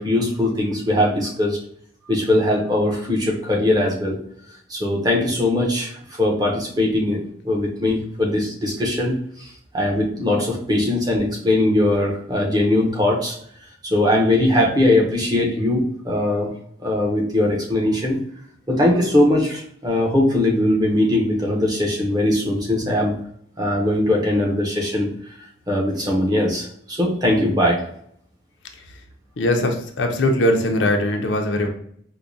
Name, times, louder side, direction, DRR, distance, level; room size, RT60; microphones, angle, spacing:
voice 1, 0.0-1.6 2.1-4.2 4.7-13.4 13.8-16.5 16.8-18.2 18.7-23.2 23.6-25.1 25.4-27.8, left 1 dB, 20° right, -2 dB, 0.7 m, -20 dB
voice 2, 29.4-31.7, left 1 dB, 70° left, 3 dB, 0.5 m, -20 dB
4.5 x 2.1 x 2.6 m, 0.65 s
head